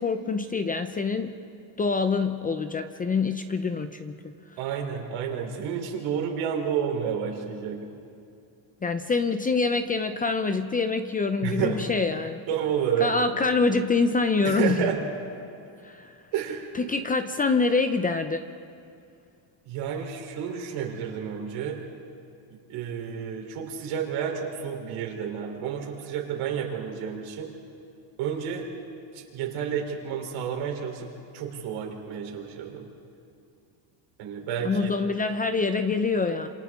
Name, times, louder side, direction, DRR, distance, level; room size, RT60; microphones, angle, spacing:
voice 1, 0.0-1.3 1.8-4.2 8.8-12.4 13.0-14.9 15.8-16.1 16.7-18.4 34.6-36.5, left 4 dB, 20° left, 8 dB, 0.6 m, -25 dB
voice 2, 4.6-7.8 11.4-11.8 12.5-13.1 14.4-15.0 16.3-16.7 19.7-21.8 22.7-27.5 28.2-28.7 29.1-31.1 31.3-32.8 34.2-34.9, right 8 dB, 80° right, 1 dB, 3.8 m, -30 dB
27.5 x 27.5 x 3.7 m, 2.5 s
cardioid pair, 140°, 47 cm